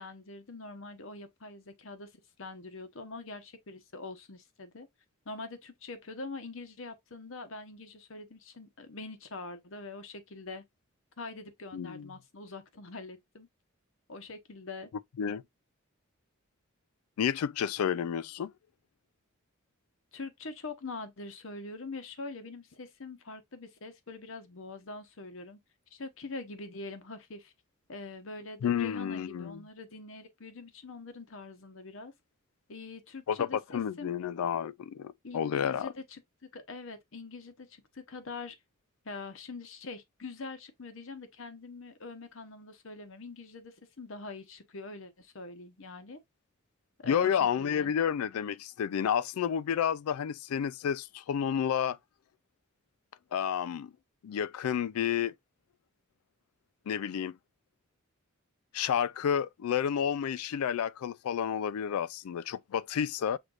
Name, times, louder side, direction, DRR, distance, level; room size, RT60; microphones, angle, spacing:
voice 1, 0.0-2.1 2.4-4.9 5.2-10.6 11.2-13.5 14.1-14.9 20.1-25.6 25.9-27.5 27.9-32.1 32.7-34.2 35.2-36.2 36.5-38.6 39.0-46.2 47.0-47.9, left 3 dB, 60° left, 1.0 m, -44 dB
voice 2, 11.7-12.1 15.2-15.4 17.2-18.5 28.6-29.6 33.3-35.9 47.1-52.0 53.3-53.9 54.2-55.3 56.9-57.3 58.7-63.4, left 8 dB, 85° left, 0.3 m, -30 dB
6.3 x 3.3 x 2.4 m
head